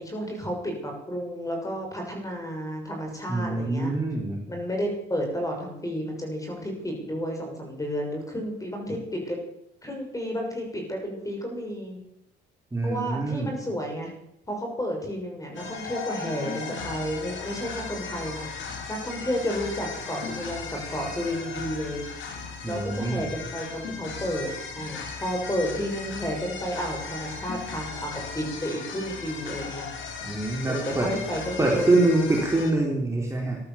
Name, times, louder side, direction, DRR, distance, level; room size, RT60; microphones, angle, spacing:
voice 1, 0.0-3.9 4.5-9.4 9.8-12.0 12.8-14.1 14.5-18.5 18.9-22.0 22.7-29.9 30.6-32.5, equal, 15° left, 2 dB, 6.4 m, -32 dB
voice 2, 3.3-4.4 12.7-13.5 22.6-23.3 30.2-31.1 31.6-33.6, right 2 dB, 15° right, -1 dB, 3.7 m, -25 dB
sound 1, 15.5-32.7, left 5 dB, 70° left, 3.4 m, -37 dB
14.5 x 12.0 x 7.2 m, 0.81 s
cardioid pair, 90°, 20 cm